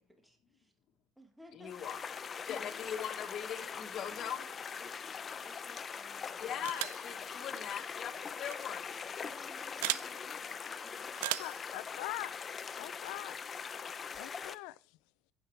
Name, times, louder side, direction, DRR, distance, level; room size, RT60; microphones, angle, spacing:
voice 1, 0.2-0.7 1.2-1.9 3.8-5.0 5.4-6.7 7.2-7.4 9.2-11.1, equal, 5° right, 1.6 m, -58 dB
voice 2, 1.5-2.0 2.4-4.4 6.4-8.8, left 9 dB, 50° left, 1.4 m, -40 dB
sound 1, 1.7-14.5, left 6 dB, 35° left, 0.6 m, -42 dB
sound 2, 6.6-7.1 8.4-8.6 9.8-10.1 11.2-11.6, right 18 dB, 90° right, 0.3 m, -35 dB
voice 3, 11.4-12.3 12.8-13.4 14.1-14.7, left 20 dB, 80° left, 0.5 m, -42 dB
10.0 x 7.4 x 3.3 m
supercardioid pair, 100°, 0 cm